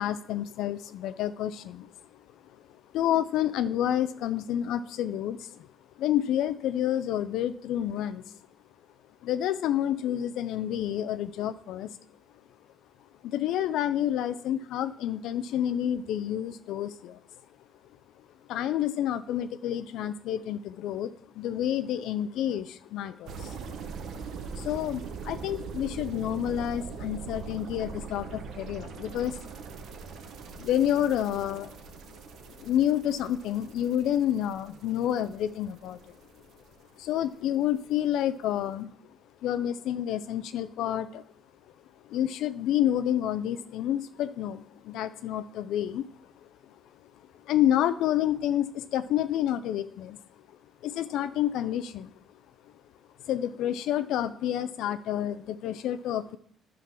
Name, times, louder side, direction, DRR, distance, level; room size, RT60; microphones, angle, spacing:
voice 1, 0.0-1.9 2.9-5.7 6.0-8.4 9.2-12.0 13.2-17.2 18.5-23.6 24.5-29.4 30.4-31.8 32.6-36.2 37.0-38.9 39.4-41.2 42.1-46.1 47.5-50.2 50.8-52.1 53.3-56.4, left 11 dB, 80° left, 12 dB, 0.4 m, -29 dB
sound 1, 23.3-37.3 37.6-37.8, right 5 dB, 60° right, 0.9 m, -42 dB
10.0 x 3.8 x 5.9 m, 0.63 s
cardioid pair, 140°, 0 cm